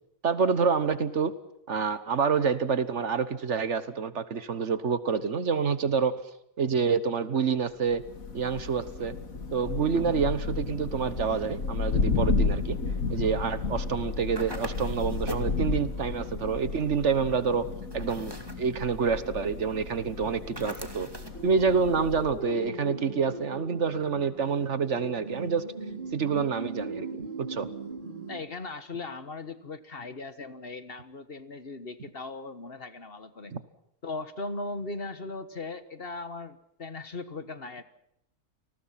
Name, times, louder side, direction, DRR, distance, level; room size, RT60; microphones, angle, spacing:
voice 1, 0.2-1.3 1.7-6.1 6.6-8.0 8.3-9.2 9.5-12.8 13.0-21.1 21.4-25.6 26.1-27.7 33.5-33.6, right 5 dB, 55° right, 14 dB, 1.5 m, -27 dB
Thunder, 7.9-22.5, left 4 dB, 75° left, 2.4 m, -32 dB
sound 1, 14.4-15.6 17.9-18.7 20.6-21.4, right 1 dB, 15° right, 2.4 m, -40 dB
sound 2, 21.3-28.4, right 3 dB, 35° right, 3.1 m, -39 dB
voice 2, 28.3-33.6 34.0-37.8, left 3 dB, 45° left, 12 dB, 1.5 m, -38 dB
29.5 x 20.0 x 5.8 m, 0.76 s
omnidirectional pair, 1.5 m